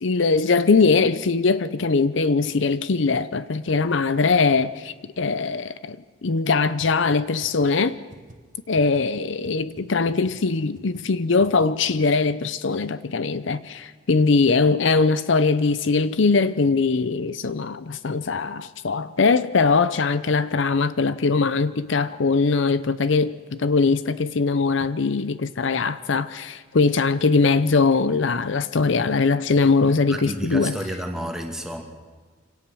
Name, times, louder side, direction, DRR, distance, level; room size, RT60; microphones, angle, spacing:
voice 1, 0.0-6.0 6.2-8.0 8.7-30.7, left 4 dB, 65° left, 0.6 m, -21 dB
sound 1, 6.8-6.9 7.1-7.2 7.4-7.7 8.1-8.4 8.8-9.0 9.4-9.5 9.8-9.9 10.1-10.3 10.8-11.0 11.4-11.6, right 1 dB, 40° right, 1.7 m, -44 dB
voice 2, 30.1-31.8, equal, 5° right, 2.4 m, -31 dB
25.5 x 17.5 x 6.2 m
head